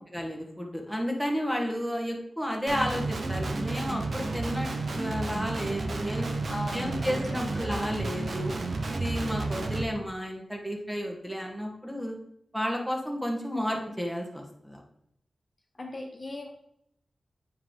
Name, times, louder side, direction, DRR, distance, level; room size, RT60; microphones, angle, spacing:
voice 1, 0.1-6.3 6.7-8.5 8.9-12.2 12.5-14.8, equal, 5° right, 1 dB, 1.5 m, -32 dB
Guitar, 2.7-9.8, right 3 dB, 65° right, 0.8 m, -31 dB
voice 2, 6.5-7.9 15.8-16.5, left 1 dB, 40° left, 1 dB, 1.4 m, -39 dB
7.6 x 4.7 x 3.8 m, 0.74 s
cardioid pair, 50°, 0 cm